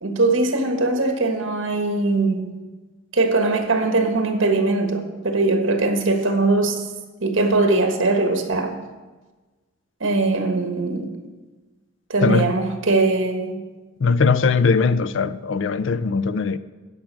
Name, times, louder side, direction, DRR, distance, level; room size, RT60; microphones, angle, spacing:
voice 1, 0.0-2.5 3.1-6.9 7.2-8.8 10.0-11.2 12.1-13.6, right 3 dB, 75° right, 1.4 m, -21 dB
voice 2, 12.2-12.5 14.0-16.6, left 4 dB, 70° left, 0.4 m, -20 dB
12.5 x 5.1 x 7.3 m
head